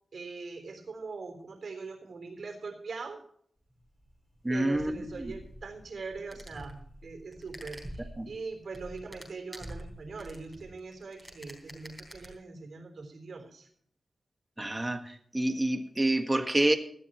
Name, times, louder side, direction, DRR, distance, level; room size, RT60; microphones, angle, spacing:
voice 1, 0.1-3.2 4.5-13.7, right 4 dB, 65° right, 3.7 m, -42 dB
sound 1, 3.7-12.3, equal, ahead, 3.7 m, -47 dB
voice 2, 4.4-5.3 8.2-8.3 14.6-16.7, right 1 dB, 15° right, 1.5 m, -28 dB
17.5 x 12.5 x 3.0 m
wide cardioid pair, 120°, 0 cm